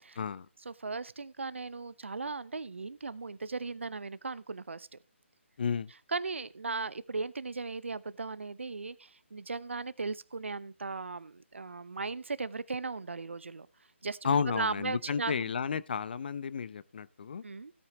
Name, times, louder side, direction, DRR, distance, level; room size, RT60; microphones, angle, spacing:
voice 1, 0.6-5.0 6.1-13.7 14.0-15.4 17.4-17.7, right 4 dB, 70° right, 0.7 m, -37 dB
voice 2, 5.6-5.9 14.2-17.4, left 6 dB, 45° left, 0.7 m, -32 dB
16.5 x 8.6 x 3.0 m
figure-of-eight pair, 150°, 7 cm